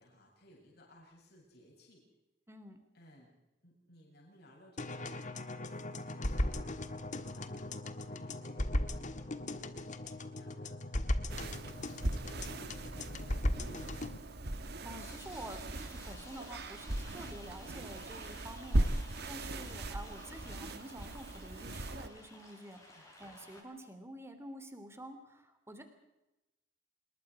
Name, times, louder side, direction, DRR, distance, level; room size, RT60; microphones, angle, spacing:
voice 1, 0.0-2.0 2.9-3.3 3.6-7.0 7.3-7.7 8.0-11.5 12.1-12.9 13.2-13.9 18.8-19.0 22.9-23.1, equal, 60° left, -2 dB, 7.8 m, -61 dB
voice 2, 2.5-2.8 14.8-18.9 19.3-25.8, right 1 dB, 15° right, 8 dB, 3.0 m, -49 dB
sound 1, 4.8-14.2, left 1 dB, 40° left, 1.5 m, -37 dB
sound 2, 11.3-22.1, right 1 dB, 60° right, 1.5 m, -38 dB
sound 3, 15.0-23.6, left 1 dB, 15° left, 7.1 m, -55 dB
27.5 x 21.0 x 5.0 m, 0.96 s
head